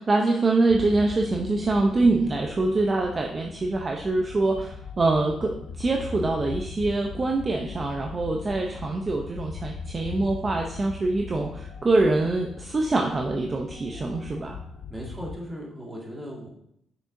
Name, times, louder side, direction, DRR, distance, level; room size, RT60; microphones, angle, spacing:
voice 1, 0.0-14.6, right 2 dB, 30° right, 1 dB, 0.6 m, -24 dB
Cavern Ambience Droning, 0.7-15.4, left 5 dB, 70° left, 0.6 m, -40 dB
voice 2, 14.9-16.5, equal, 10° right, -3 dB, 1.9 m, -37 dB
6.7 x 6.1 x 2.6 m, 0.74 s
cardioid pair, 90°, 0 cm